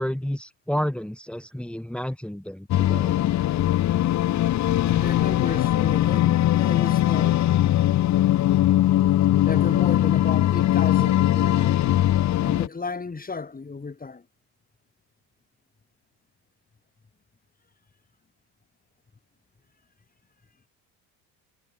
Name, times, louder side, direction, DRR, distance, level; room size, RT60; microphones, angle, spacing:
voice 1, 0.0-3.1, equal, ahead, 2.3 m, -30 dB
sound 1, 2.7-12.7, left 13 dB, 40° left, 0.9 m, -21 dB
sound 2, 4.8-12.3, left 26 dB, 75° left, 2.3 m, -33 dB
voice 2, 4.8-7.4 9.4-11.8 12.4-14.2, left 4 dB, 20° left, 6.5 m, -33 dB
supercardioid pair, 100°, 42 cm